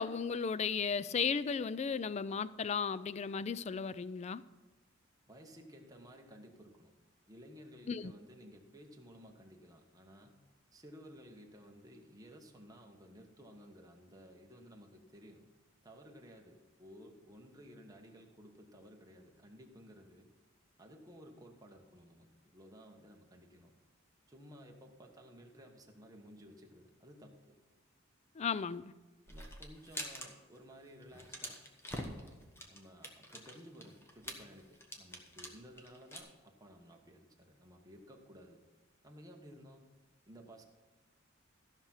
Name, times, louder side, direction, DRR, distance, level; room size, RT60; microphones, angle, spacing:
voice 1, 0.0-4.4 7.9-8.1 28.4-28.9, left 6 dB, 30° left, 0.3 m, -35 dB
voice 2, 5.3-6.9 7.3-10.4 10.7-15.4 15.8-20.3 20.8-23.7 24.3-27.6 29.3-31.6 32.0-32.4 32.7-38.6 39.0-39.9 40.3-40.6, equal, 15° right, 1.2 m, -56 dB
sound 1, 29.3-30.3 30.5-30.7 31.0-36.2, left 1 dB, 10° left, 1.2 m, -45 dB
14.0 x 6.0 x 5.7 m
head